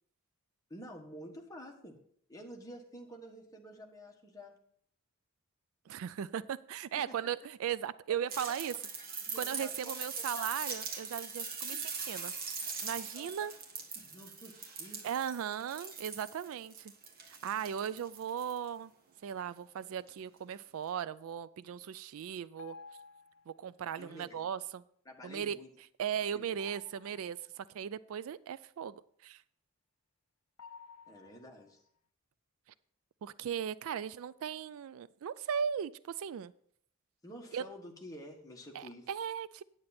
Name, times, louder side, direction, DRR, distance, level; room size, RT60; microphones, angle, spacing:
voice 1, 0.7-2.0 2.3-4.6 8.3-8.7 9.2-10.5 11.3-11.4 11.7-11.8 13.1-13.3 13.9-15.0 24.0-24.4 25.0-25.7 26.3-26.6 31.1-31.8 37.2-39.1, equal, 15° left, 0 dB, 1.5 m, -50 dB
voice 2, 5.9-8.7 9.4-12.3 12.8-13.5 15.0-16.9 17.2-18.9 19.2-22.8 23.5-24.8 25.2-25.6 26.0-29.4 33.2-36.5 37.5-37.6 38.7-39.6, right 8 dB, 65° right, 18 dB, 0.3 m, -37 dB
sound 1, 8.3-18.7 20.1-20.2, right 5 dB, 45° right, 1.5 m, -41 dB
sound 2, 19.6-19.9 22.6-23.7 26.6-27.7 30.6-31.8, left 5 dB, 75° left, 0.6 m, -54 dB
9.6 x 8.8 x 4.2 m, 0.63 s
head